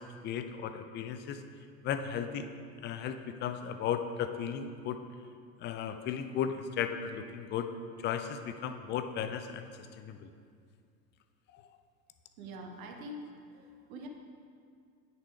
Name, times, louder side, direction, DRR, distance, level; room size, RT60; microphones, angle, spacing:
voice 1, 0.0-1.4 1.8-2.5 2.8-5.0 5.6-7.7 8.0-9.6 10.0-10.3 11.5-11.6, left 8 dB, 25° left, 8 dB, 0.5 m, -35 dB
voice 2, 12.4-14.1, right 1 dB, 55° right, 2 dB, 1.4 m, -45 dB
9.8 x 6.8 x 4.7 m, 2.2 s
figure-of-eight pair, 80°, 49 cm